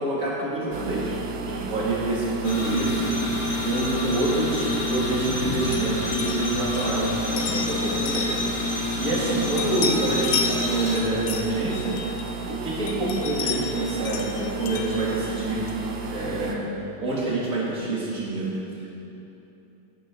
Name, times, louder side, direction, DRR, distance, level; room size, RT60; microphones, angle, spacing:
voice 1, 0.0-3.3 3.6-8.3 8.7-11.9 12.5-15.7 16.0-16.6 17.0-18.9, right 2 dB, 40° right, -7 dB, 2.9 m, -27 dB
sound 1, 0.7-16.6, right 4 dB, 65° right, 1.1 m, -34 dB
sound 2, 2.4-11.0, left 3 dB, 50° left, 2.0 m, -28 dB
sound 3, 4.6-9.3 9.6-12.5 12.9-15.9, left 7 dB, 90° left, 1.7 m, -34 dB
12.5 x 10.5 x 3.9 m, 3.0 s
omnidirectional pair, 2.3 m